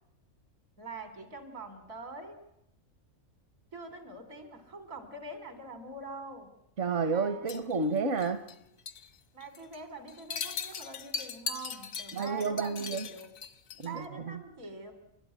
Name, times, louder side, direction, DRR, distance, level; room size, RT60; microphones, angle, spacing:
voice 1, 0.8-2.4 3.7-6.5 7.1-7.7 9.3-13.3 13.8-14.9, right 3 dB, 80° right, 8 dB, 4.0 m, -44 dB
voice 2, 6.8-8.4 12.1-13.1 13.8-14.4, right 4 dB, 65° right, 10 dB, 1.4 m, -31 dB
sound 1, 7.5-8.6 8.9-9.1 9.4-9.8 10.1-14.0, left 5 dB, 80° left, 1.5 m, -39 dB
30.0 x 13.0 x 9.9 m, 0.84 s
omnidirectional pair, 1.4 m